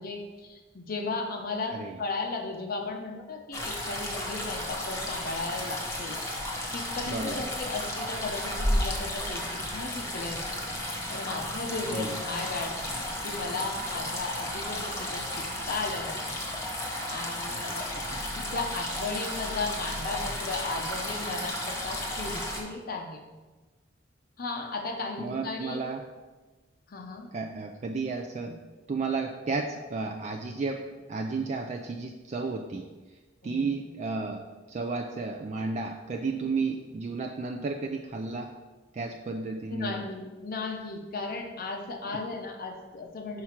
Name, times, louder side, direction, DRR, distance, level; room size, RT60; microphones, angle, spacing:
voice 1, 0.0-6.2 6.7-12.7 13.2-16.2 17.1-17.9 18.4-23.2 24.4-25.8 26.9-27.3 33.4-33.7 39.7-43.4, left 3 dB, 50° left, 2 dB, 0.7 m, -35 dB
sound 1, 3.5-22.6, left 1 dB, 15° left, 1.0 m, -33 dB
voice 2, 7.1-7.5 11.9-12.2 17.5-18.2 25.2-26.0 27.3-30.8 31.1-32.9 33.4-38.5 38.9-40.0, right 4 dB, 35° right, 3 dB, 0.3 m, -33 dB
5.8 x 4.7 x 4.4 m, 1.2 s
head